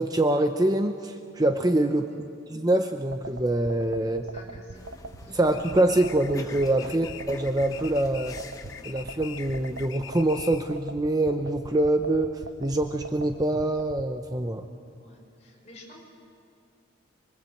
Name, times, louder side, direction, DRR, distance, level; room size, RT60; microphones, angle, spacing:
voice 1, 0.0-2.1 2.5-4.3 5.3-8.4 8.8-12.3 12.6-14.7, right 1 dB, 20° right, 6 dB, 0.7 m, -25 dB
voice 2, 1.8-2.2 4.0-4.9 5.2-5.4 6.7-6.9 15.0-16.0, left 1 dB, 35° left, -1 dB, 5.7 m, -51 dB
sound 1, 3.1-14.1, right 2 dB, 80° right, 1.0 m, -41 dB
sound 2, 4.7-9.9, left 1 dB, 15° left, 1.2 m, -44 dB
sound 3, 5.5-10.8, left 9 dB, 65° left, 0.9 m, -43 dB
25.0 x 24.0 x 7.8 m, 2.4 s
head